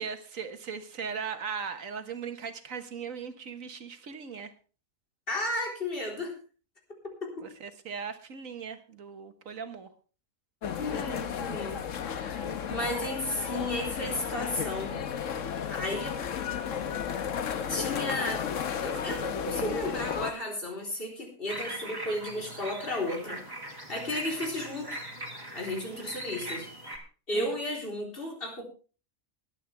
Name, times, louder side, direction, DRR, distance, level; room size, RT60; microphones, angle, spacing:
voice 1, 0.0-4.5 7.4-9.9 27.3-27.5, right 6 dB, 75° right, 9 dB, 1.7 m, -38 dB
voice 2, 5.3-6.3 7.0-7.5 10.8-11.8 12.1-12.4 12.7-15.1 15.7-16.2 17.7-18.4 18.8-23.4 23.9-25.0 25.5-26.7 27.3-28.7, left 1 dB, 40° left, 0 dB, 4.1 m, -33 dB
sound 1, 10.6-20.3, left 8 dB, 70° left, 1.3 m, -33 dB
sound 2, 21.5-27.0, right 1 dB, 15° right, 2.6 m, -40 dB
20.5 x 9.3 x 3.4 m, 0.37 s
omnidirectional pair, 1.4 m